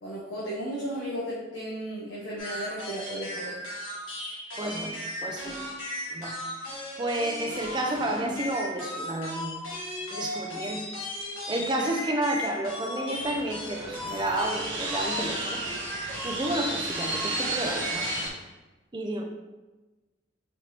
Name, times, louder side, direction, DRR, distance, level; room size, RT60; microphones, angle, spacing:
voice 1, 0.0-3.6, equal, 65° left, -6 dB, 0.7 m, -35 dB
sound 1, 2.4-18.3, left 1 dB, 85° left, 1.5 m, -36 dB
voice 2, 4.6-5.0 5.2-5.7 6.1-9.6 10.1-10.9 11.2-15.6 16.2-18.1 18.9-19.2, right 1 dB, 20° right, 2 dB, 0.4 m, -31 dB
sound 2, 13.1-18.3, right 2 dB, 60° right, 0.8 m, -33 dB
4.3 x 2.6 x 3.1 m, 1.1 s
head